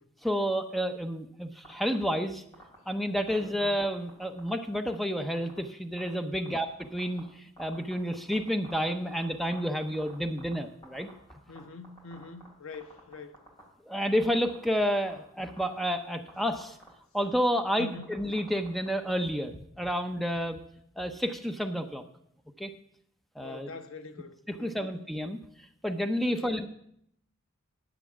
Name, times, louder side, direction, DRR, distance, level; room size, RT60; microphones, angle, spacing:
voice 1, 0.2-2.4 2.9-11.1 13.9-16.8 17.1-20.6 21.0-22.0 22.6-22.7 23.4-23.7 24.5-26.7, equal, ahead, 0.7 m, -30 dB
sound 1, 1.6-2.1 2.5-2.7 3.3-4.5 4.7-4.9 5.3-5.6 6.0-6.1 6.4-7.2 7.6-10.6 10.8-11.6 11.8-12.5 12.7-13.6 14.0-14.6 14.9-15.1 15.5-16.0 16.3-16.4 16.5-16.9 17.2-19.1, equal, 20° left, 4.0 m, -49 dB
voice 2, 11.5-13.3 17.8-18.1 23.4-24.9 26.3-26.5, left 4 dB, 65° left, 0.9 m, -44 dB
10.0 x 8.2 x 7.1 m
head